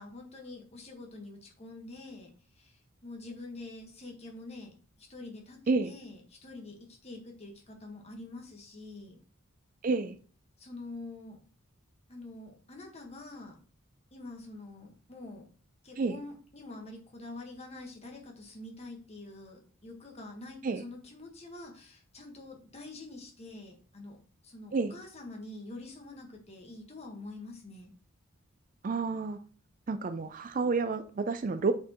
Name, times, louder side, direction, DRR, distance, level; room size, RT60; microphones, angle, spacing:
voice 1, 0.0-9.2 10.6-11.4 12.1-13.6 14.1-15.5 15.8-24.2 24.4-27.9, left 2 dB, 30° left, 1 dB, 1.4 m, -46 dB
voice 2, 9.8-10.1 16.0-16.2 20.6-20.8 24.7-24.9 28.8-29.4 29.9-31.7, right 4 dB, 40° right, 10 dB, 0.3 m, -29 dB
7.1 x 4.4 x 3.0 m, 0.40 s
head